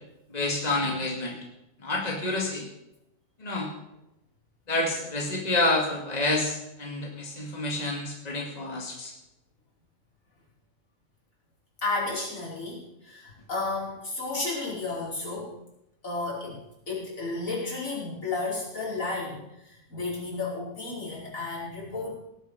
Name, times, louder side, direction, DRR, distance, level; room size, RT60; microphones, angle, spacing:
voice 1, 0.3-1.4 1.8-2.7 3.4-3.7 4.7-9.1, left 2 dB, 30° left, -1 dB, 2.3 m, -28 dB
voice 2, 11.8-15.5 16.0-22.1, left 3 dB, 75° left, -6 dB, 5.4 m, -33 dB
18.0 x 8.1 x 6.7 m, 0.89 s
omnidirectional pair, 1.4 m